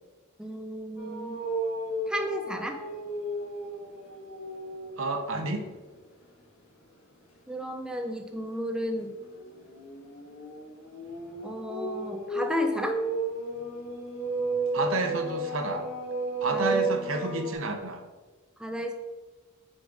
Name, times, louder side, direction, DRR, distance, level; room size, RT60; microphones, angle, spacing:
voice 1, 0.4-1.4 2.1-2.8 7.5-9.1 11.4-13.0 16.5-16.9 18.6-18.9, equal, 5° right, 4 dB, 0.4 m, -33 dB
sound 1, 1.0-5.1 5.5-5.9 8.3-17.5, right 2 dB, 85° left, 1.6 m, -33 dB
voice 2, 5.0-5.7 14.7-15.8 16.4-18.0, right 3 dB, 75° right, 5 dB, 0.9 m, -30 dB
6.1 x 3.9 x 4.9 m, 1.3 s
head